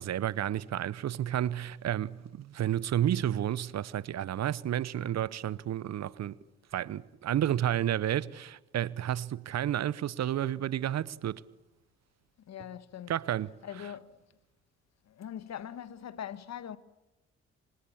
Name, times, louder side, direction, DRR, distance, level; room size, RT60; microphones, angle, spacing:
voice 1, 0.0-6.4 6.7-11.4 13.1-13.9, right 11 dB, 55° right, 0.9 m, -31 dB
voice 2, 12.5-13.1 13.6-14.1 15.1-16.8, left 9 dB, 60° left, 1.5 m, -41 dB
28.0 x 25.5 x 7.2 m
hypercardioid pair, 45°, 31 cm